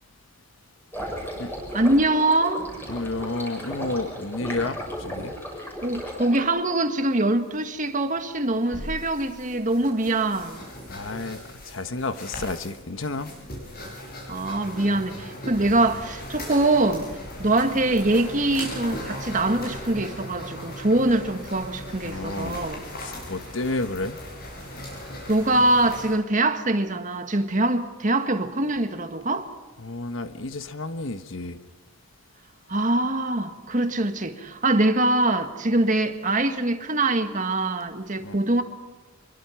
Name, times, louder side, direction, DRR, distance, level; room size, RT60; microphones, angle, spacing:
sound 1, 0.9-6.4, equal, 10° left, 6.6 m, -35 dB
voice 1, 1.7-2.7 5.8-10.6 13.8-13.9 14.3-22.8 25.3-29.5 32.7-38.6, right 2 dB, 35° right, 1.7 m, -23 dB
voice 2, 2.9-5.4 10.9-13.3 22.0-22.6 23.0-24.2 29.8-31.6 38.2-38.4, left 2 dB, 65° left, 1.2 m, -31 dB
sound 2, 8.4-26.1, left 1 dB, 45° left, 7.7 m, -38 dB
25.5 x 23.0 x 5.8 m
head